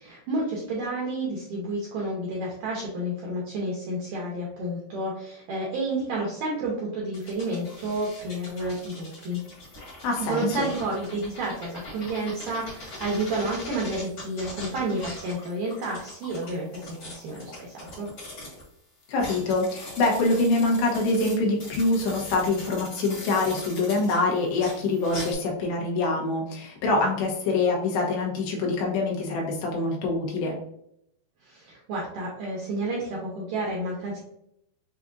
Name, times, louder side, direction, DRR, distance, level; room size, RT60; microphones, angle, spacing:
voice 1, 0.0-9.4 10.2-18.1 31.4-34.2, right 2 dB, 80° right, -3 dB, 1.9 m, -30 dB
sound 1, 7.1-18.7 19.0-25.3, left 2 dB, 45° left, 1.8 m, -42 dB
voice 2, 10.0-10.7 19.1-30.6, left 2 dB, 80° left, -2 dB, 3.2 m, -25 dB
7.1 x 2.5 x 2.5 m, 0.76 s
omnidirectional pair, 4.8 m